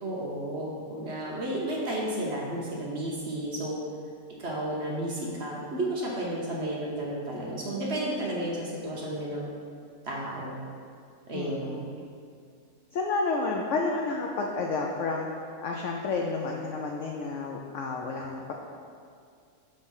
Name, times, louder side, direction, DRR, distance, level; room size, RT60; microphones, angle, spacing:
voice 1, 0.0-3.8 4.4-9.5 10.0-10.6 11.3-11.8, right 1 dB, 50° right, -4 dB, 0.9 m, -32 dB
voice 2, 11.3-11.9 12.9-15.3 15.6-18.5, left 3 dB, 75° left, 0 dB, 0.6 m, -30 dB
6.3 x 3.3 x 5.4 m, 2.3 s
omnidirectional pair, 1.8 m